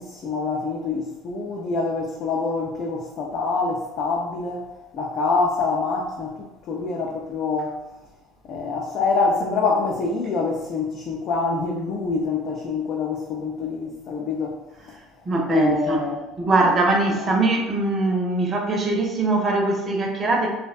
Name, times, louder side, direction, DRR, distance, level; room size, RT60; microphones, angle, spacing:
voice 1, 0.0-7.8 8.4-14.6 14.8-15.0 15.5-16.2, left 4 dB, 55° left, 0.4 m, -26 dB
voice 2, 15.0-20.5, right 2 dB, 35° right, 0.6 m, -22 dB
2.5 x 2.1 x 2.4 m
supercardioid pair, 85°, 0 cm